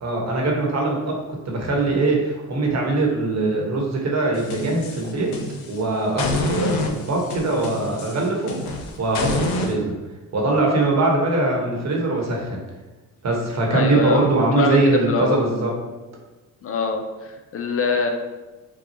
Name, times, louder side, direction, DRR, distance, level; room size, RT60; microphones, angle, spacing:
voice 1, 0.0-1.1 1.5-5.3 5.7-8.5 9.0-9.9 10.3-12.6 13.2-15.7, right 2 dB, 45° right, -1 dB, 1.2 m, -22 dB
sound 1, 4.3-5.8 6.2-9.7, left 2 dB, 85° left, 0.7 m, -27 dB
voice 2, 13.7-14.3 14.5-14.8 15.1-15.4 16.6-18.1, left 5 dB, 40° left, 4 dB, 0.5 m, -23 dB
6.0 x 2.3 x 2.8 m, 1.2 s
cardioid pair, 85°, 36 cm